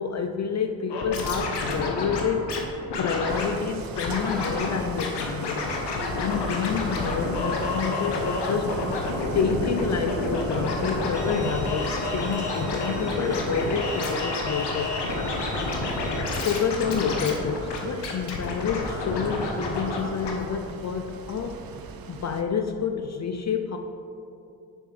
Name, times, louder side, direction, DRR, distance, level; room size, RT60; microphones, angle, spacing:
voice 1, 0.0-2.4 3.0-5.6 6.1-8.8 9.3-14.9 16.4-21.6 22.1-23.8, left 6 dB, 35° left, 6 dB, 0.5 m, -28 dB
Scratching (performance technique), 0.9-2.6 2.9-3.5 3.9-4.7 5.0-20.0 20.2-20.3, left 2 dB, 60° left, 1.2 m, -29 dB
sound 1, 3.3-22.4, right 5 dB, 50° right, 0.7 m, -42 dB
Bowed string instrument, 11.1-16.2, right 1 dB, 15° right, 1.0 m, -42 dB
6.8 x 6.7 x 3.3 m, 2.7 s
hypercardioid pair, 40°, 47 cm